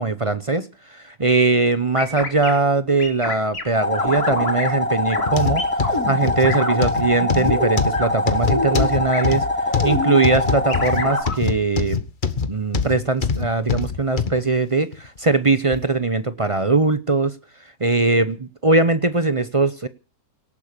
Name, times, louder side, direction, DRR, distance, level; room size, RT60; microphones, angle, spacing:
voice 1, 0.0-9.5 9.8-12.0 12.5-17.3 17.8-19.9, right 3 dB, 30° right, 0.6 m, -21 dB
sound 1, 2.0-2.5 3.0-3.6 3.9-4.7 5.1-5.3 5.6-6.8 7.1-8.1 8.4-8.9 9.1-9.2 9.7-10.2 10.7-11.4, left 2 dB, 65° left, 4.3 m, -27 dB
sound 2, 3.7-11.2, left 2 dB, 5° left, 2.8 m, -24 dB
sound 3, 5.3-14.4 14.9-15.1 15.7-15.8, left 5 dB, 35° left, 1.3 m, -24 dB
18.0 x 10.5 x 6.8 m
omnidirectional pair, 1.7 m